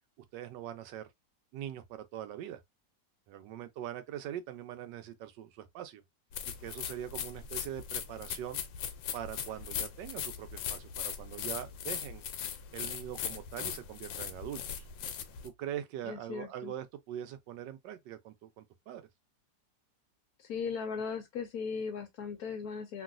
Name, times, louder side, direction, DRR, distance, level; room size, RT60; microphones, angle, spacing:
voice 1, 0.3-1.1 1.5-2.6 3.3-6.0 6.5-8.6 9.1-12.2 12.7-14.8 15.4-19.0, right 11 dB, 80° right, 1.2 m, -42 dB
sound 1, 6.3-15.5, left 8 dB, 85° left, 1.3 m, -39 dB
voice 2, 16.0-16.7 20.4-23.0, left 5 dB, 65° left, 1.0 m, -38 dB
3.0 x 2.6 x 2.4 m
omnidirectional pair, 1.9 m